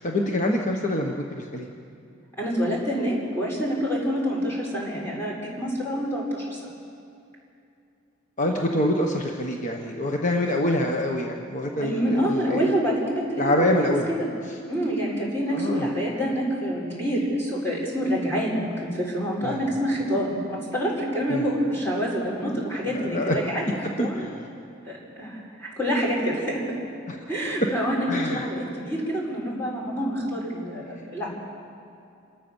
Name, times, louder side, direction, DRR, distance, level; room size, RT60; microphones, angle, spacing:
voice 1, 0.0-1.7 8.4-12.7 13.4-14.1 15.5-15.9 19.4-19.6 21.3-21.5 22.4-23.4 24.0-24.4 27.1-27.2 28.1-28.5, left 1 dB, 40° left, 1 dB, 1.3 m, -26 dB
voice 2, 2.4-6.6 11.8-13.9 14.2-14.3 14.6-23.6 24.0-24.2 24.8-26.8 27.3-31.3, equal, 15° left, -5 dB, 5.9 m, -27 dB
28.5 x 13.5 x 7.2 m, 2.6 s
head